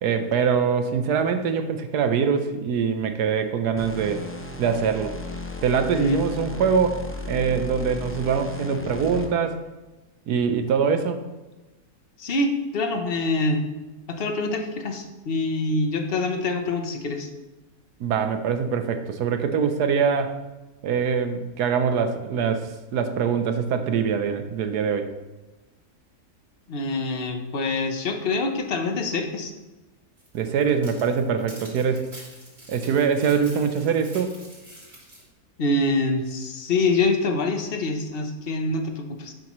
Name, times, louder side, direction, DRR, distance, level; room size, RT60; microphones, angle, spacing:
voice 1, 0.0-4.3 4.6-5.2 5.6-9.6 10.3-11.2 18.0-20.4 20.8-25.1 30.3-32.1 32.7-34.4, right 6 dB, 85° right, 8 dB, 1.4 m, -23 dB
sound 1, 3.8-9.5, left 2 dB, 20° left, 0.3 m, -35 dB
voice 2, 12.2-13.6 14.1-17.3 26.7-29.5 35.6-39.3, left 2 dB, 40° left, 5 dB, 1.0 m, -25 dB
sound 2, 30.2-35.3, right 1 dB, 40° right, 3.0 m, -46 dB
10.5 x 7.5 x 3.1 m, 1.1 s
omnidirectional pair, 1.7 m